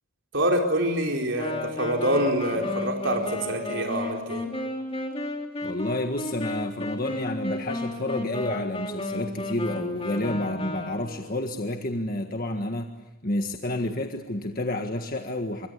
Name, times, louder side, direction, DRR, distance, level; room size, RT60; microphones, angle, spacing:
voice 1, 0.3-4.4, right 1 dB, 55° right, 2 dB, 4.4 m, -26 dB
Wind instrument woodwind instrument, 1.4-11.3, left 1 dB, 25° left, 3.6 m, -33 dB
voice 2, 5.6-12.9 13.2-15.7, left 1 dB, 40° left, 4 dB, 1.7 m, -30 dB
25.0 x 25.0 x 8.3 m, 1.1 s
head